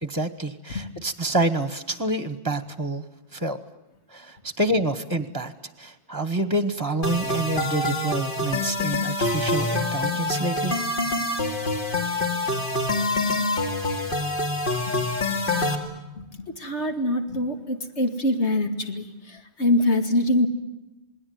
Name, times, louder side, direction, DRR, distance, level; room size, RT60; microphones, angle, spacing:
voice 1, 0.0-3.0 3.3-3.6 4.1-5.5 5.8-10.8, right 1 dB, 20° right, 12 dB, 1.1 m, -27 dB
sound 1, 7.0-15.7, left 2 dB, 50° left, 3.0 m, -26 dB
voice 2, 16.1-20.5, left 1 dB, 85° left, 6 dB, 2.5 m, -24 dB
28.0 x 20.0 x 9.3 m, 0.96 s
omnidirectional pair, 1.1 m